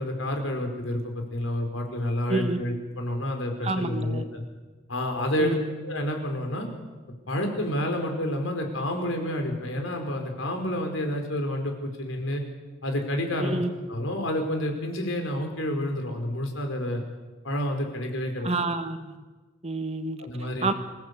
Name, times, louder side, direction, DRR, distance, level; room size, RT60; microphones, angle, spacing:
voice 1, 0.0-4.4 4.9-6.7 7.3-12.4 12.8-13.6 13.9-17.0 17.4-18.5 20.2-20.7, left 1 dB, 85° left, 4 dB, 4.7 m, -29 dB
voice 2, 3.6-4.2 5.4-5.6 13.4-13.7 18.4-19.1 19.6-20.2 20.6-20.7, right 2 dB, 30° right, 8 dB, 1.4 m, -28 dB
27.0 x 16.5 x 8.3 m, 1.3 s
head